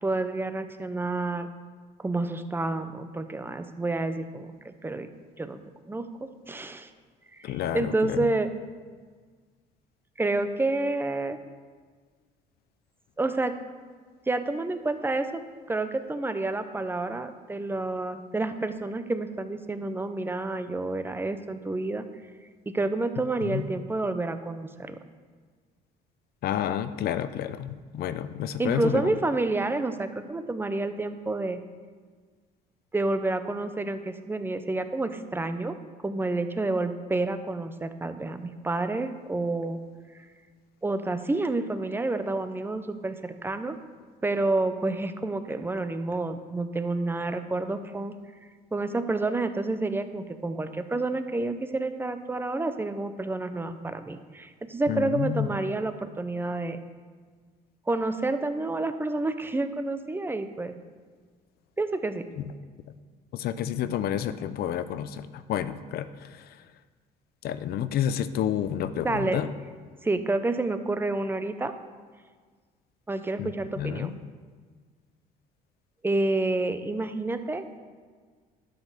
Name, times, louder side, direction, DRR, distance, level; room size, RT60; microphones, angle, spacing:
voice 1, 0.0-1.5 2.0-5.1 5.4-5.6 5.9-6.9 7.4-8.5 10.2-11.4 13.2-13.6 14.3-15.4 15.7-22.1 22.7-25.0 28.6-31.6 32.9-35.8 36.0-39.8 40.8-43.8 44.2-48.1 48.7-56.8 57.9-60.7 61.8-62.3 69.0-69.4 70.0-71.7 73.1-74.1 76.0-77.6, right 2 dB, 15° right, 9 dB, 0.7 m, -29 dB
voice 2, 7.4-8.3 23.4-23.6 26.4-29.1 54.9-55.5 62.4-62.5 63.3-66.5 67.4-69.5 73.4-74.2, left 10 dB, 65° left, 13 dB, 0.6 m, -30 dB
12.0 x 5.3 x 6.7 m, 1.5 s
cardioid pair, 110°, 17 cm